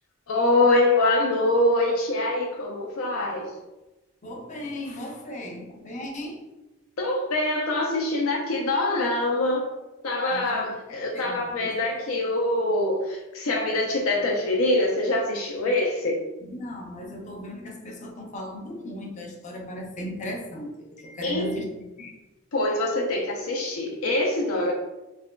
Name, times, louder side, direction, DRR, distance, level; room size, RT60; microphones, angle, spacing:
voice 1, 0.3-3.5 7.0-9.7 10.0-16.2 21.2-21.6 22.5-24.7, left 2 dB, 90° left, -1 dB, 0.5 m, -24 dB
voice 2, 4.2-6.3 10.3-10.5 11.1-11.2 16.6-20.7 21.0-21.6 22.0-22.1, equal, 35° left, 1 dB, 0.5 m, -36 dB
6.0 x 2.2 x 2.2 m, 1.0 s
head